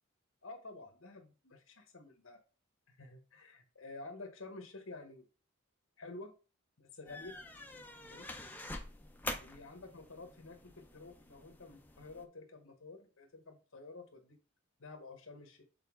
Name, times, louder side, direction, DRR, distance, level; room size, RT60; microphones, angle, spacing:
voice 1, 0.4-2.4 2.9-5.3 6.0-6.3 6.8-7.4 8.0-8.3 9.4-14.4 14.8-15.6, left 3 dB, 70° left, 4 dB, 1.1 m, -50 dB
sound 1, 7.1-12.2, left 2 dB, 10° left, 0.5 m, -46 dB
6.7 x 3.9 x 3.7 m, 0.34 s
head